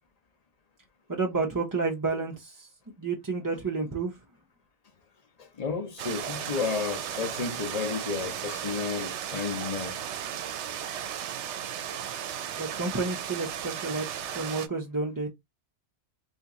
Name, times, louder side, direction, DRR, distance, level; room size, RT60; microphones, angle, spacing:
voice 1, 1.1-2.7 3.0-4.2 6.2-6.4 12.6-15.3, right 3 dB, 25° right, 0.4 m, -31 dB
voice 2, 5.4-10.0, left 5 dB, 40° left, 0.7 m, -32 dB
sound 1, 6.0-14.7, right 9 dB, 80° right, 0.9 m, -35 dB
2.9 x 2.5 x 3.6 m
omnidirectional pair, 1.2 m